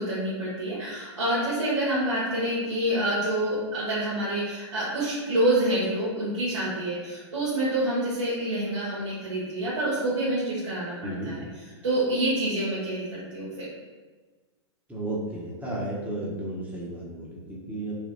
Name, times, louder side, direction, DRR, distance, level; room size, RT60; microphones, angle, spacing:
voice 1, 0.0-11.4 11.8-13.7, right 1 dB, 90° right, -9 dB, 1.3 m, -27 dB
voice 2, 11.0-11.3 14.9-17.9, right 1 dB, 10° right, -5 dB, 0.9 m, -33 dB
3.4 x 2.2 x 4.0 m, 1.3 s
hypercardioid pair, 125°, 15 cm